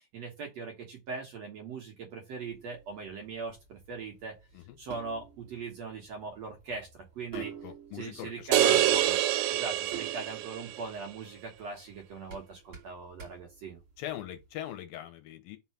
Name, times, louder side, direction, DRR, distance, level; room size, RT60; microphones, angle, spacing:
voice 1, 0.0-4.4 4.8-7.5 7.9-9.0 9.5-13.8, right 4 dB, 60° right, 1.9 m, -40 dB
sound 1, 2.4-14.5, right 8 dB, 40° right, 3.0 m, -49 dB
voice 2, 7.3-9.2 14.0-15.6, left 11 dB, 80° left, 2.5 m, -41 dB
sound 2, 8.5-10.9, right 13 dB, 85° right, 2.6 m, -26 dB
5.6 x 3.9 x 5.8 m
omnidirectional pair, 4.3 m